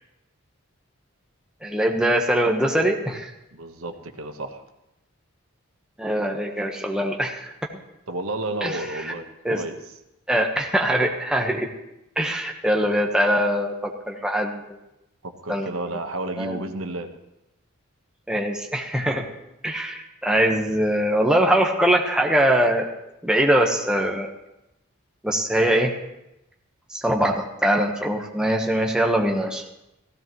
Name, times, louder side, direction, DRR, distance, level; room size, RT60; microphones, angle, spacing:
voice 1, 1.6-3.3 6.0-7.5 8.6-8.8 9.4-9.6 10.3-11.7 12.2-14.6 15.5-15.7 16.4-16.6 18.3-19.2 19.6-22.9 23.2-24.3 25.2-25.9 26.9-29.6, right 1 dB, 5° right, 0 dB, 1.1 m, -22 dB
voice 2, 3.5-4.6 8.1-9.2 9.5-9.8 15.2-17.1, right 2 dB, 80° right, 6 dB, 1.2 m, -31 dB
16.0 x 16.0 x 3.1 m, 0.90 s
head